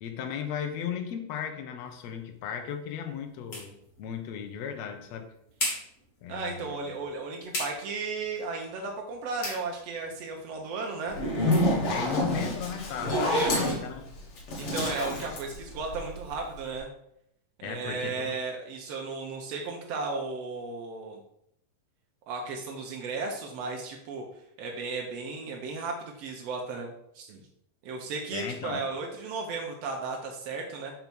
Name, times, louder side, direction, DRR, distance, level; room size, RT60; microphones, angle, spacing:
voice 1, 0.0-5.3 6.2-7.0 11.9-14.1 17.6-18.3 28.3-28.8, left 8 dB, 70° left, 5 dB, 1.6 m, -36 dB
sound 1, 1.8-13.3, left 1 dB, 30° left, 1.7 m, -42 dB
voice 2, 6.3-11.2 12.9-13.8 14.6-16.9 17.6-21.2 22.3-24.2 24.6-27.4 27.8-30.9, right 4 dB, 80° right, 1 dB, 1.4 m, -35 dB
Zipper (clothing), 11.1-16.3, left 1 dB, 50° left, 1.8 m, -28 dB
5.4 x 4.6 x 6.1 m, 0.74 s
omnidirectional pair, 4.0 m